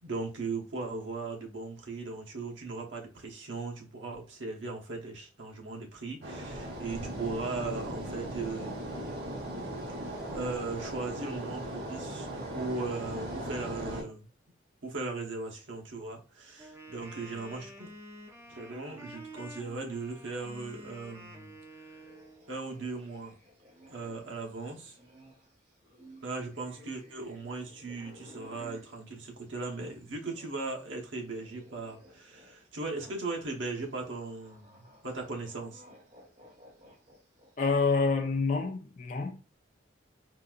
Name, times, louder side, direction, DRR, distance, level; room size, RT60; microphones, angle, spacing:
voice 1, 0.0-9.0 10.0-12.3 12.5-14.3 14.8-17.9 18.5-21.5 21.9-22.0 22.5-23.4 23.9-25.0 26.2-35.8, right 3 dB, 80° right, 0.8 m, -38 dB
sound 1, 6.2-14.0, right 1 dB, 55° right, 1.0 m, -38 dB
Wind instrument woodwind instrument, 16.6-22.5, right 1 dB, 15° right, 0.5 m, -49 dB
sound 2, 21.9-30.6 30.9-37.7, equal, 35° right, 1.3 m, -56 dB
voice 2, 37.6-39.3, left 4 dB, 40° left, 0.5 m, -27 dB
3.9 x 2.3 x 2.3 m
head